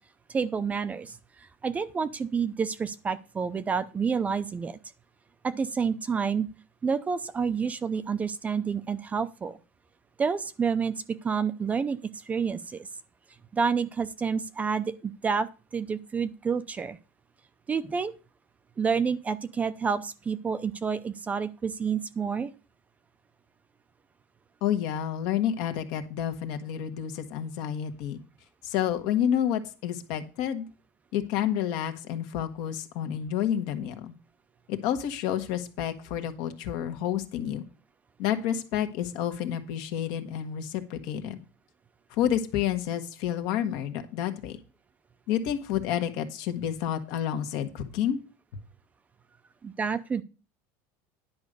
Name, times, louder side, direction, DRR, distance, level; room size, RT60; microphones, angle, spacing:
voice 1, 0.3-4.8 5.4-6.5 6.8-9.6 10.2-10.9 11.2-12.9 13.5-15.5 15.7-17.0 17.7-18.1 18.8-22.5 49.6-50.2, right 6 dB, 20° right, 13 dB, 0.5 m, -29 dB
voice 2, 24.6-28.2 28.6-30.6 31.1-34.1 34.7-37.6 38.2-41.4 42.1-44.6 45.3-48.2, left 10 dB, 65° left, 8 dB, 1.4 m, -29 dB
10.5 x 5.1 x 6.7 m, 0.33 s
cardioid pair, 145°, 8 cm